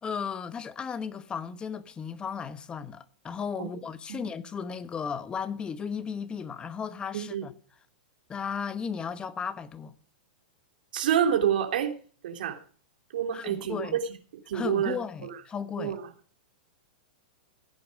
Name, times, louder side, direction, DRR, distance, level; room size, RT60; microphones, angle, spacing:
voice 1, 0.0-7.5 8.3-9.9 13.3-14.0 14.5-16.0, left 6 dB, 20° left, 1.2 m, -35 dB
voice 2, 7.1-7.5 10.9-11.9 12.2-12.6 13.1-14.0 14.3-15.4 15.8-16.0, right 9 dB, 70° right, 3.1 m, -28 dB
16.5 x 9.5 x 5.0 m
hypercardioid pair, 125°, 5 cm